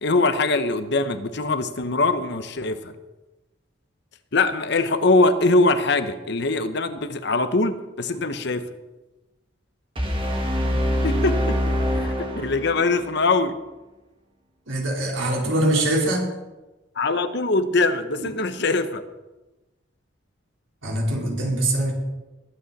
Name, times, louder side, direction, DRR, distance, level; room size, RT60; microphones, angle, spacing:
voice 1, 0.0-2.9 4.3-8.7 11.0-11.5 11.9-13.5 17.0-19.0, left 3 dB, 60° left, 11 dB, 0.9 m, -22 dB
sound 1, 10.0-13.0, equal, 25° right, 2.1 m, -24 dB
voice 2, 14.7-16.2 18.2-18.3 20.8-21.9, right 1 dB, 80° right, -2 dB, 4.0 m, -23 dB
21.0 x 9.0 x 4.1 m, 1.1 s
head